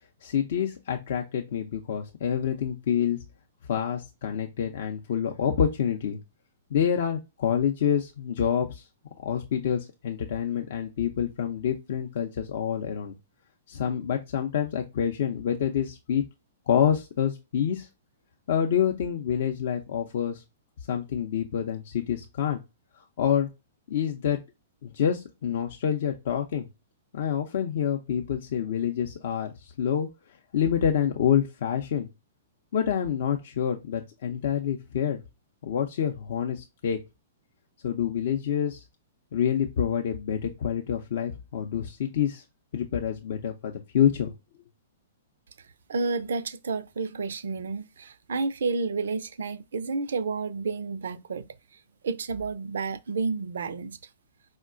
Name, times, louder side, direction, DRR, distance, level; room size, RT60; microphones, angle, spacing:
voice 1, 0.2-3.2 3.7-6.2 6.7-8.8 9.2-13.1 13.7-16.2 16.7-17.9 18.5-20.4 20.9-22.6 23.0-23.5 23.9-24.4 24.8-26.7 27.1-30.1 30.5-32.1 32.7-35.2 35.6-37.0 37.8-38.8 39.3-42.4 42.7-44.3, left 8 dB, 60° left, 0.5 m, -27 dB
voice 2, 45.9-51.5 52.0-54.0, right 4 dB, 70° right, 0.3 m, -30 dB
4.7 x 2.1 x 2.4 m
figure-of-eight pair, 115°, 0 cm